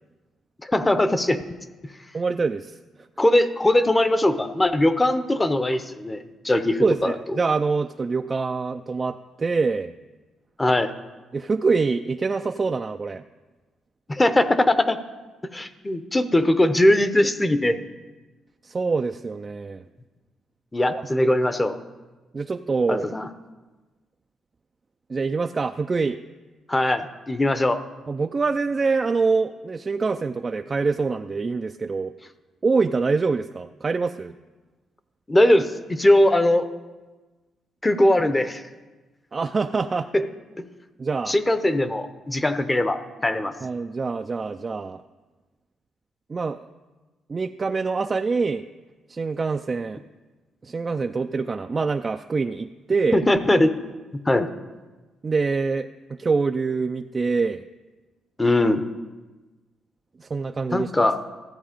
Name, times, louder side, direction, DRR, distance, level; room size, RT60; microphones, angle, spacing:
voice 1, 0.6-1.4 3.2-6.2 6.4-7.1 10.6-10.9 14.1-15.0 15.5-17.8 20.7-21.8 22.9-23.3 26.7-27.8 35.3-36.6 37.8-38.6 40.1-40.3 41.3-43.5 53.1-53.8 54.3-54.5 58.4-58.8 60.7-61.2, left 1 dB, 15° left, 11 dB, 0.8 m, -20 dB
voice 2, 2.1-2.8 6.8-9.9 11.3-13.2 18.6-19.8 20.9-21.0 22.3-23.1 25.1-26.2 28.1-32.1 32.6-34.3 39.3-40.1 41.0-41.3 43.6-45.0 46.3-46.7 47.3-48.7 49.1-50.0 50.6-53.2 55.2-57.6 60.2-61.1, right 4 dB, 30° right, 6 dB, 0.3 m, -25 dB
13.5 x 8.0 x 5.1 m, 1.2 s
cardioid pair, 90°, 0 cm